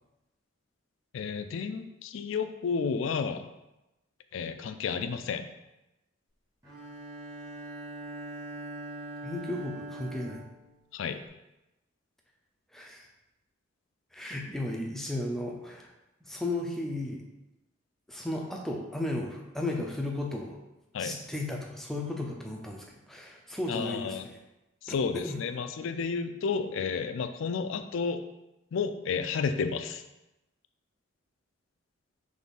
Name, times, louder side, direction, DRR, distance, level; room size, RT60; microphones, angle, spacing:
voice 1, 1.1-3.5 4.3-5.5 10.9-11.2 20.9-21.2 23.7-24.3 24.8-28.2 28.7-30.0, left 5 dB, 70° left, 9 dB, 0.3 m, -31 dB
Bowed string instrument, 6.6-11.2, right 2 dB, 20° right, 1.5 m, -42 dB
voice 2, 9.2-10.4 12.7-13.0 14.1-15.9 16.2-17.2 18.1-20.6 21.0-24.4 25.2-25.4, left 1 dB, ahead, 0 dB, 0.5 m, -34 dB
3.7 x 3.3 x 4.0 m, 0.97 s
head